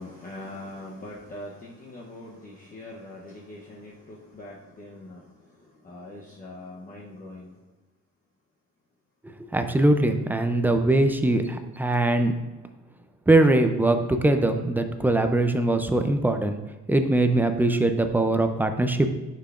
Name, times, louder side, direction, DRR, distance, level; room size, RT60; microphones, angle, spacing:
voice 1, 0.0-5.2 5.8-7.5, left 1 dB, 30° left, -3 dB, 0.8 m, -42 dB
voice 2, 9.4-12.3 13.3-16.6 16.9-19.1, right 2 dB, 5° right, 7 dB, 0.3 m, -22 dB
10.0 x 5.8 x 2.4 m, 1.2 s
cardioid pair, 155°, 29 cm